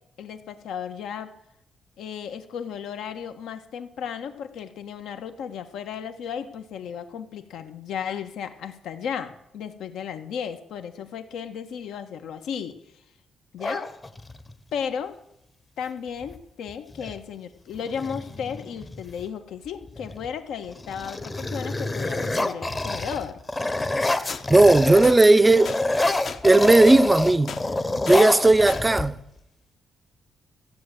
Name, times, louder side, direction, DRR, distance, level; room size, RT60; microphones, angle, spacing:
voice 1, 0.2-1.3 2.0-12.7 13.5-13.9 14.7-15.2 15.8-23.4, left 7 dB, 75° left, 1.5 m, -34 dB
sound 1, 13.6-14.5 16.2-16.4 16.7-17.2 17.7-19.2 19.9-20.3 20.6-25.2 25.4-29.4, left 2 dB, 15° left, 0.8 m, -27 dB
sound 2, 24.3-24.4 25.0-25.2 25.7-25.8 26.3-26.4 26.9-27.0 27.5-27.6 28.1-28.2 28.7-28.8, left 6 dB, 50° left, 1.0 m, -35 dB
voice 2, 24.5-25.7 26.4-27.6 28.1-29.2, right 2 dB, 10° right, 0.6 m, -16 dB
15.0 x 7.6 x 9.2 m
cardioid pair, 180°, 0 cm